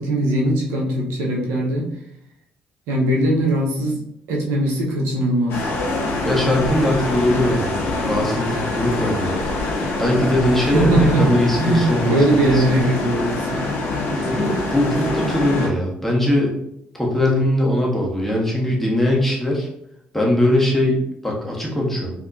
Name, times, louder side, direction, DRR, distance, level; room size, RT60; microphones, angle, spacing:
voice 1, 0.0-1.9 2.9-4.0 4.3-5.7 10.6-13.6, right 1 dB, 85° right, -2 dB, 1.0 m, -20 dB
sound 1, 5.5-15.7, left 2 dB, 70° left, 1.0 m, -24 dB
voice 2, 6.2-9.5 10.0-12.6 14.1-16.6 16.9-19.7 20.1-22.1, left 1 dB, 5° left, -2 dB, 1.4 m, -21 dB
4.2 x 2.9 x 2.6 m, 0.76 s
supercardioid pair, 65°, 4 cm